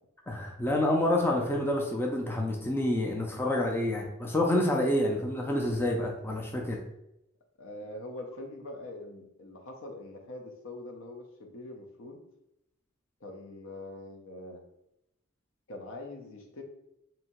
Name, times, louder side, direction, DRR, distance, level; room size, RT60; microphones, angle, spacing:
voice 1, 0.3-6.8, left 1 dB, 10° left, 0 dB, 0.4 m, -28 dB
voice 2, 7.6-12.2 13.2-14.6 15.7-16.6, left 1 dB, 65° left, 2 dB, 0.7 m, -43 dB
2.8 x 2.7 x 4.3 m, 0.85 s
head